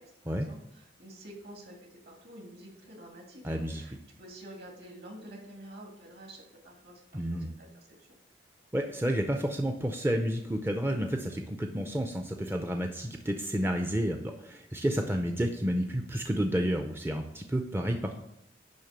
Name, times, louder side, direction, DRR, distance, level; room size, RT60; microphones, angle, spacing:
voice 1, 0.0-8.2, right 1 dB, 60° right, -1 dB, 2.7 m, -49 dB
voice 2, 3.4-3.8 7.1-7.5 8.7-18.2, equal, 15° right, 4 dB, 0.5 m, -30 dB
10.5 x 3.6 x 6.7 m, 0.81 s
head